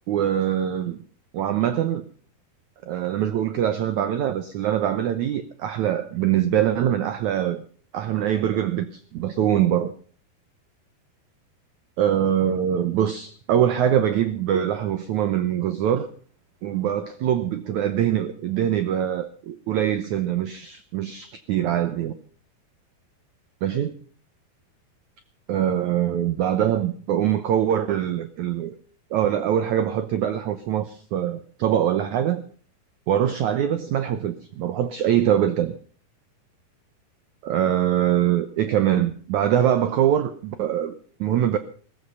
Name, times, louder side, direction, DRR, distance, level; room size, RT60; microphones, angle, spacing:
voice 1, 0.1-1.0 1.3-2.0 2.9-7.6 7.9-9.9 12.0-16.1 16.6-22.2 23.6-23.9 25.5-28.7 29.1-32.4 33.1-35.7 37.4-40.9 41.2-41.6, right 10 dB, 75° right, 1.8 m, -23 dB
17.0 x 15.0 x 5.5 m
omnidirectional pair, 4.4 m